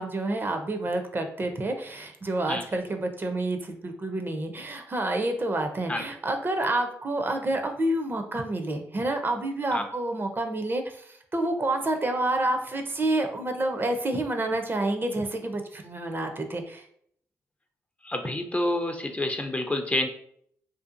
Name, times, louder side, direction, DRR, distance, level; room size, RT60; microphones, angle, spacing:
voice 1, 0.0-16.8, right 2 dB, 35° right, 5 dB, 0.5 m, -28 dB
voice 2, 18.0-20.1, left 1 dB, 20° left, 5 dB, 0.4 m, -28 dB
2.6 x 2.3 x 2.5 m, 0.65 s
supercardioid pair, 50°, 7 cm